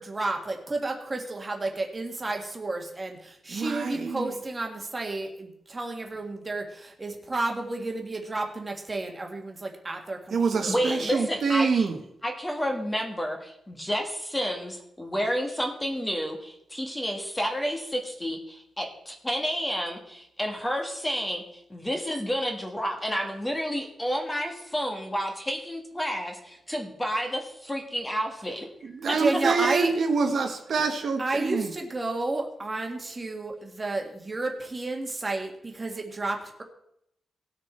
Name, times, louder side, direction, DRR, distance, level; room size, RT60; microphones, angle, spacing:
voice 1, 0.0-11.2 29.2-29.9 31.2-36.6, right 2 dB, 20° right, 2 dB, 1.8 m, -31 dB
voice 2, 3.5-4.3 10.3-12.0 28.8-31.7, right 5 dB, 50° right, 4 dB, 1.2 m, -26 dB
voice 3, 10.7-11.9 12.2-21.4 21.7-28.7 29.1-29.2, equal, 10° left, 3 dB, 1.6 m, -30 dB
19.0 x 6.5 x 4.4 m, 0.77 s
wide cardioid pair, 165°, 0 cm